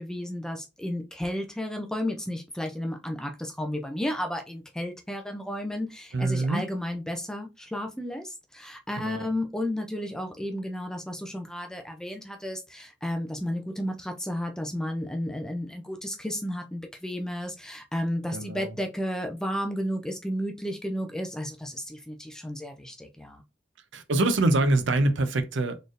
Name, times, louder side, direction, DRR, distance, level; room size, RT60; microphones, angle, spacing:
voice 1, 0.0-23.4, left 1 dB, 5° left, 0.4 m, -33 dB
voice 2, 6.1-6.7 9.0-9.3 18.3-18.8 23.9-25.8, right 2 dB, 75° right, 0.6 m, -25 dB
4.1 x 3.3 x 2.5 m
head